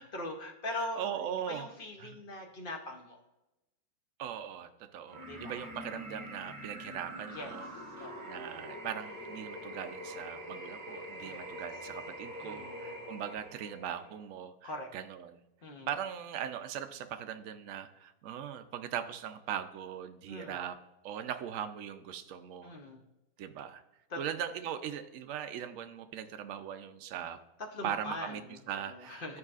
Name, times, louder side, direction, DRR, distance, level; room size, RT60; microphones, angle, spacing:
voice 1, 0.0-1.0 1.5-3.2 5.3-5.5 7.3-8.3 11.2-11.5 12.4-13.0 14.6-14.9 15.6-15.9 20.3-20.6 22.6-23.0 24.1-24.2 27.6-28.6 28.8-29.4, left 2 dB, 55° left, 2 dB, 0.6 m, -42 dB
voice 2, 0.7-1.7 2.0-2.2 4.2-7.7 8.0-15.4 15.9-20.8 21.0-22.8 23.4-23.8 24.2-27.4 27.8-28.4 28.7-29.4, right 9 dB, 75° right, 8 dB, 0.7 m, -40 dB
sound 1, 5.1-14.1, equal, 10° right, 2.5 m, -44 dB
12.0 x 4.8 x 2.4 m, 0.98 s
omnidirectional pair, 1.9 m